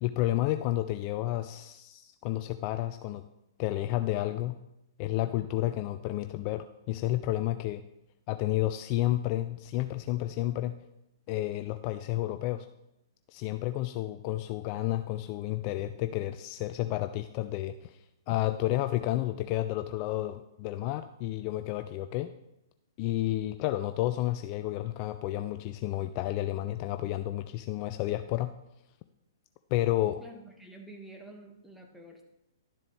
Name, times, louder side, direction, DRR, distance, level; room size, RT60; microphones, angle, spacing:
voice 1, 0.0-3.2 3.6-4.6 5.0-7.8 8.3-10.8 11.3-12.7 13.3-22.3 23.0-28.5 29.7-30.2, left 15 dB, 35° left, 10 dB, 0.4 m, -31 dB
voice 2, 30.2-32.2, right 1 dB, ahead, 1 dB, 1.5 m, -49 dB
12.0 x 7.6 x 3.2 m, 0.88 s
figure-of-eight pair, 115°, 2 cm